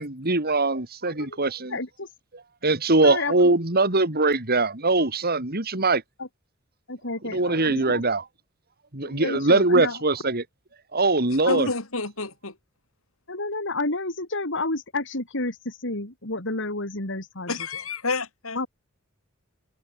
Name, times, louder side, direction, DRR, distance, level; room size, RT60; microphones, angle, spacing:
voice 1, 0.0-1.8 2.6-6.0 7.3-8.2 8.9-10.4 10.9-11.7, right 2 dB, 50° right, 3.6 m, -22 dB
voice 2, 1.1-1.4 1.7-2.1 3.0-3.6 6.2-6.3 6.9-8.0 9.0-10.0 11.5-11.7 13.3-17.7 18.5-18.7, left 2 dB, 60° left, 5.3 m, -30 dB
voice 3, 11.5-12.6 17.5-18.7, left 3 dB, 80° left, 5.5 m, -30 dB
head